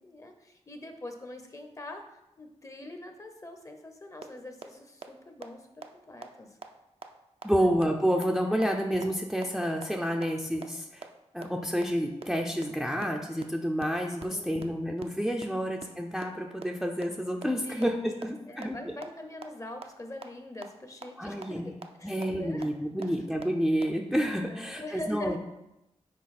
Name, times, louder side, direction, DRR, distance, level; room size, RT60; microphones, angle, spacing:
voice 1, 0.0-2.1 2.4-6.6 7.5-7.7 14.3-14.6 15.6-15.7 17.6-22.6 23.0-23.1 24.5-25.4, left 1 dB, 25° left, 6 dB, 0.9 m, -43 dB
sound 1, 4.2-4.3 4.6-4.7 5.0-5.1 5.4-5.5 5.8-5.9 6.2-6.3 6.6-6.7 7.0-7.1 7.4-7.5 7.8-7.9 8.2-8.3 8.6-8.7 9.0-9.1 9.4-9.5 9.8-9.9 10.2-10.3 10.6-10.7 11.0-11.1 11.4-11.5 11.8-11.9 12.2-12.3 12.6-12.7 13.0-13.1 13.4-13.5 13.8-13.9 14.2-14.3 14.6-14.7 15.0-15.1 15.4-15.5 15.8-15.9 16.2-16.3 16.6-16.7 17.0-17.1 17.4-17.5 17.8-17.9 18.2-18.3 18.6-18.7 19.0-19.1 19.4-19.5 19.8-19.9 20.2-20.3 20.6-20.7 21.0-21.1 21.4-21.5 21.8-21.9 22.2-22.3 22.6-22.7 23.0-23.1 23.4-23.5 23.8-23.9, right 5 dB, 55° right, 0.6 m, -40 dB
voice 2, 7.4-11.0 11.3-18.9 21.2-21.7 22.0-25.4, equal, ahead, 1 dB, 0.6 m, -29 dB
6.3 x 4.5 x 4.3 m, 0.90 s
cardioid pair, 75°, 12 cm